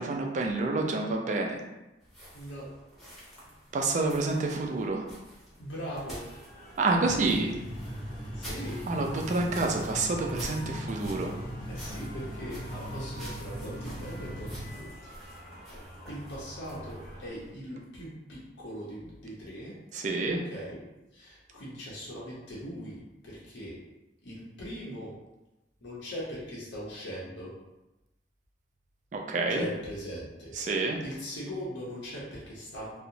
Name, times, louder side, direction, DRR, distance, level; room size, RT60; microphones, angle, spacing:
voice 1, 0.0-1.6 3.7-5.1 6.8-7.5 8.9-11.3 19.9-20.5 29.1-29.7 30.6-31.0, right 3 dB, 40° right, 2 dB, 0.3 m, -28 dB
sound 1, 2.0-17.5, equal, ahead, 0.7 m, -48 dB
voice 2, 2.3-2.7 5.6-6.2 8.3-8.8 11.7-15.1 15.6-19.7 20.4-20.8 21.1-23.8 24.2-25.1 25.8-27.6 29.5-30.6 31.0-33.0, equal, 85° left, -6 dB, 0.7 m, -40 dB
sound 2, 5.8-17.3, equal, 45° left, 0.8 m, -49 dB
sound 3, 7.0-14.7, equal, 25° left, 0.4 m, -39 dB
2.8 x 2.0 x 2.5 m, 1.0 s
head